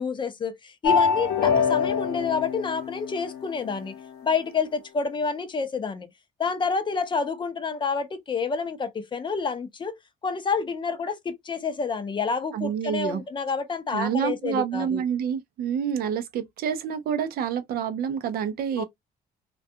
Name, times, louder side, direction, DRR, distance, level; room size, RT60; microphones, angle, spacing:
voice 1, 0.0-3.9 4.2-6.1 6.4-10.0 10.2-15.0 18.8-18.9, left 5 dB, 30° left, 0.5 m, -28 dB
sound 1, 0.8-3.8, left 6 dB, 65° left, 0.7 m, -25 dB
voice 2, 12.5-13.2 13.9-18.8, right 8 dB, 65° right, 0.5 m, -28 dB
2.3 x 2.2 x 2.6 m
cardioid pair, 110°, 17 cm